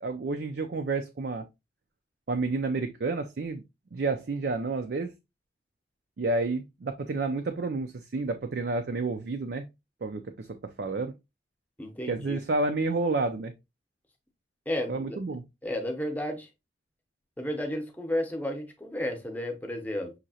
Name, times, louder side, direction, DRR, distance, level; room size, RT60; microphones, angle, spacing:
voice 1, 0.0-1.4 2.3-3.6 3.9-5.1 6.2-9.7 10.0-11.1 12.0-13.5 14.9-15.4, right 3 dB, 60° right, 0.5 m, -30 dB
voice 2, 11.8-12.4 14.7-15.2 15.6-16.5 17.4-20.1, left 1 dB, 10° left, 0.8 m, -32 dB
6.2 x 2.8 x 2.7 m
head